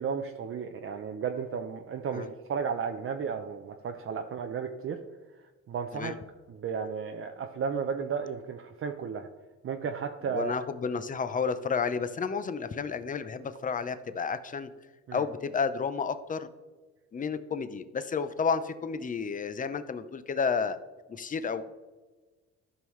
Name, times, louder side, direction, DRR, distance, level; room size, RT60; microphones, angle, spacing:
voice 1, 0.0-5.0 5.7-6.1 6.5-9.3 9.6-10.6 15.1-15.3, right 6 dB, 45° right, 5 dB, 0.6 m, -33 dB
voice 2, 10.3-14.7 15.1-16.5 17.1-20.8 21.1-21.6, left 5 dB, 25° left, 12 dB, 0.6 m, -31 dB
12.5 x 5.5 x 3.2 m, 1.3 s
cardioid pair, 90°, 30 cm